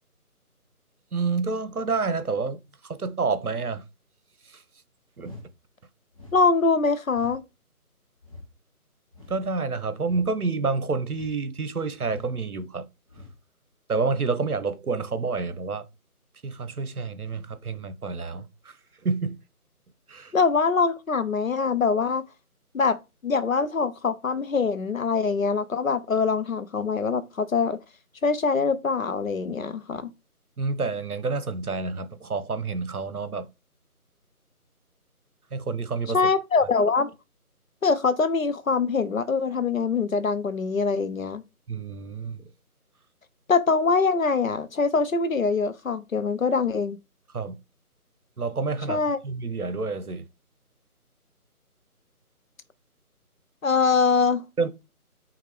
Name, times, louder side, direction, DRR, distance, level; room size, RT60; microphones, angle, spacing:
voice 1, 1.1-3.8 4.5-4.6 5.2-5.3 9.3-12.9 13.9-15.9 16.4-18.7 19.0-19.4 20.1-20.3 30.6-33.5 35.5-36.2 41.7-42.5 47.3-47.5 48.4-50.2 54.6-54.7, right 4 dB, 70° right, 0.9 m, -28 dB
sound 1, 5.2-5.5 6.1-6.4 7.1-7.4 8.2-8.5 9.1-9.5 10.0-10.3 11.1-11.4 12.0-12.4 13.1-13.4, left 2 dB, 25° left, 1.0 m, -45 dB
voice 2, 6.3-7.4 20.3-22.2 22.7-23.0 23.2-27.8 28.2-30.1 36.1-37.1 37.8-41.4 43.5-47.0 48.9-49.2 53.6-54.5, left 4 dB, 60° left, 0.7 m, -23 dB
5.8 x 2.4 x 3.5 m
figure-of-eight pair, 160°, 46 cm